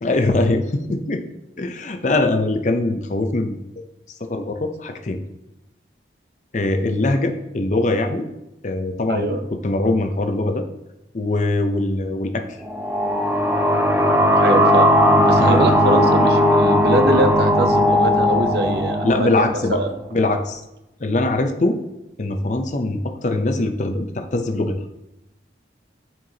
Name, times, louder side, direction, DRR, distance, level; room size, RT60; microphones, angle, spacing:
voice 1, 0.0-1.2 1.6-3.6 4.3-5.2 6.5-8.3 8.6-10.7 11.1-12.5 15.4-15.6 19.0-19.8 20.1-20.6 21.0-21.8 22.2-24.8, left 2 dB, 40° left, 6 dB, 0.6 m, -22 dB
voice 2, 9.1-9.4 14.4-14.9 15.3-19.9, right 2 dB, 60° right, 7 dB, 0.7 m, -23 dB
sound 1, 12.6-20.1, equal, 10° right, 0.5 m, -17 dB
9.1 x 4.5 x 2.8 m, 0.92 s
head